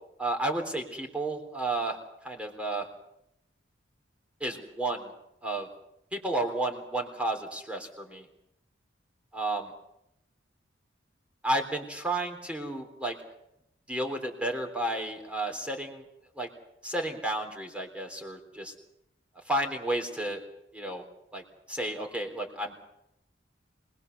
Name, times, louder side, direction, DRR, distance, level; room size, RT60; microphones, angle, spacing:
voice 1, 0.2-2.0 2.2-2.9 4.4-5.1 5.4-5.7 6.1-8.3 9.3-9.7 11.4-13.2 13.9-16.0 16.4-16.5 16.8-18.7 19.5-20.4 20.7-21.0 21.3-21.4 21.7-22.7, right 2 dB, 5° right, 3 dB, 3.6 m, -32 dB
25.5 x 20.5 x 6.8 m, 0.80 s
head